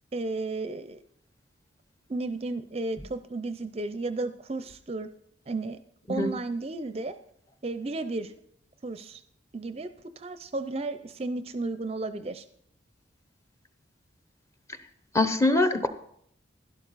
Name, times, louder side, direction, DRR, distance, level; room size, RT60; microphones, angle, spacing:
voice 1, 0.1-1.0 2.1-5.1 5.5-5.8 6.1-7.1 7.6-8.3 8.8-9.2 9.5-12.4, right 2 dB, 30° right, 11 dB, 0.5 m, -33 dB
voice 2, 15.1-15.9, left 2 dB, 15° left, 9 dB, 0.7 m, -23 dB
12.0 x 11.5 x 4.0 m, 0.68 s
head